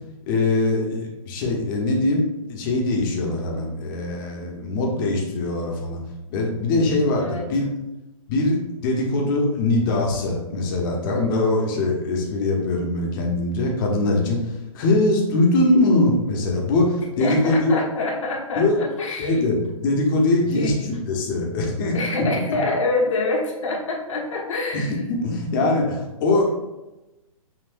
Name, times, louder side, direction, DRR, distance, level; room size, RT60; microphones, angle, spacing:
voice 1, 0.3-6.0 6.3-7.6 8.3-8.6 8.8-14.4 14.7-17.8 18.6-18.8 19.2-21.9 24.7-24.8 25.1-26.6, left 2 dB, 35° left, 0 dB, 1.0 m, -22 dB
voice 2, 17.2-19.5 20.5-20.7 21.9-25.0, left 3 dB, 60° left, -1 dB, 1.1 m, -26 dB
5.8 x 2.6 x 2.6 m, 1.0 s
figure-of-eight pair, 125°, 18 cm